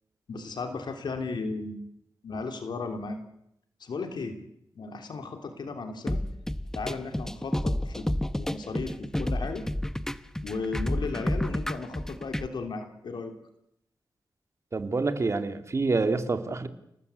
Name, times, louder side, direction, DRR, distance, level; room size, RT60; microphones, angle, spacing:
voice 1, 0.3-1.9 2.2-3.2 3.8-4.4 4.7-6.2 6.7-9.6 10.4-13.3, left 4 dB, 70° left, 6 dB, 3.2 m, -35 dB
sound 1, 6.1-12.5, left 1 dB, 5° left, 1.0 m, -30 dB
voice 2, 14.7-16.7, right 3 dB, 40° right, 8 dB, 2.6 m, -27 dB
30.0 x 19.0 x 8.3 m, 0.78 s
wide cardioid pair, 105°, 8 cm